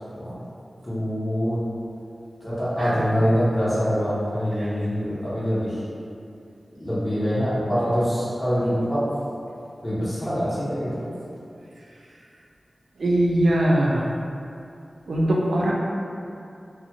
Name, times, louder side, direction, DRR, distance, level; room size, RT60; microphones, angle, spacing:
voice 1, 0.8-1.6 2.4-5.8 6.8-9.0 9.8-11.1, equal, 30° left, -11 dB, 0.9 m, -24 dB
voice 2, 13.0-14.0 15.1-15.7, right 1 dB, 90° right, -4 dB, 0.4 m, -21 dB
2.5 x 2.3 x 2.9 m, 2.5 s
wide cardioid pair, 70°, 0 cm